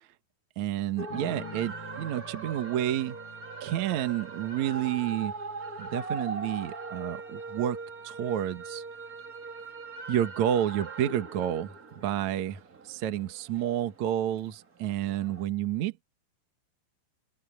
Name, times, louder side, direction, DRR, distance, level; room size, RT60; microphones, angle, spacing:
voice 1, 0.6-3.2 3.6-5.3 5.8-7.8 8.0-8.8 10.1-12.6 12.8-16.0, right 11 dB, 70° right, 1.7 m, -30 dB
sound 1, 1.0-15.4, right 3 dB, 45° right, 1.2 m, -40 dB
sound 2, 1.1-10.2 11.6-12.2, left 4 dB, 50° left, 3.4 m, -51 dB
open air
omnidirectional pair, 5.6 m